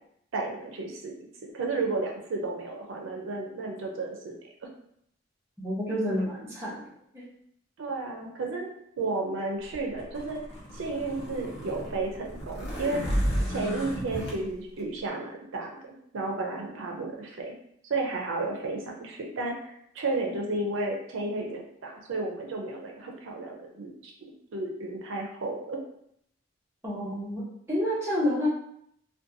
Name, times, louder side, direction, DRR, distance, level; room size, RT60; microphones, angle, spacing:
voice 1, 0.3-1.2 1.5-4.4 7.8-8.7 9.0-10.4 10.7-13.0 13.5-15.8 16.1-17.5 17.8-25.8, right 3 dB, 80° right, 1 dB, 0.4 m, -32 dB
voice 2, 5.6-6.7 7.1-7.2 26.8-27.4 27.7-28.5, equal, 15° right, -8 dB, 0.7 m, -29 dB
sound 1, 9.7-14.4, equal, 60° left, 0.8 m, -32 dB
2.5 x 2.2 x 2.6 m, 0.71 s
head